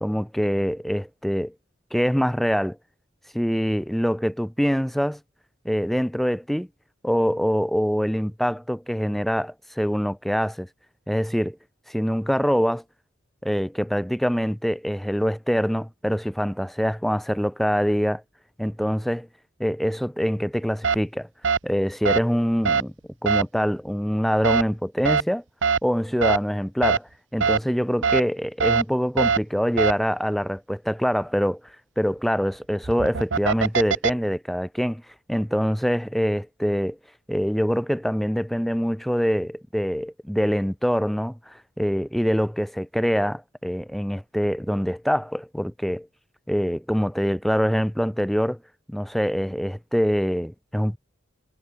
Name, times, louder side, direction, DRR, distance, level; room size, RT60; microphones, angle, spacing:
voice 1, 0.0-1.5 1.9-2.8 3.3-5.2 5.6-6.7 7.0-10.7 11.1-11.6 11.9-12.8 13.4-18.2 18.6-19.3 19.6-21.3 21.6-22.9 23.2-25.4 25.8-31.6 32.0-35.0 35.3-37.0 37.3-46.1 46.5-48.6 48.9-51.0, equal, ahead, 0.5 m, -24 dB
sound 1, 20.8-21.0 21.4-21.6 22.0-22.2 22.6-22.8 23.3-23.4 24.4-24.6 25.0-25.2 25.6-25.8 26.2-26.4 26.8-27.0 27.4-27.6 28.0-28.2 28.6-28.8 29.2-29.4 29.8-29.9 32.8-34.1, right 5 dB, 70° right, 0.8 m, -21 dB
head